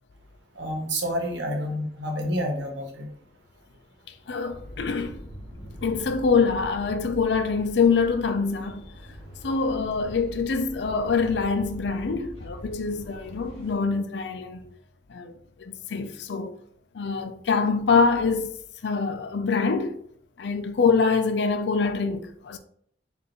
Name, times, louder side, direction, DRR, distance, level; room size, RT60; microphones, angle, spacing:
voice 1, 0.5-3.1, equal, 75° right, 1.0 m, -29 dB
voice 2, 4.3-5.2 5.8-8.8 9.4-14.7 15.1-15.3 15.6-16.6 16.9-18.6 18.8-20.0 20.4-22.6, left 4 dB, 65° left, 0.4 m, -25 dB
sound 1, 4.5-13.8, equal, 35° left, 1.3 m, -42 dB
5.2 x 2.5 x 3.0 m
head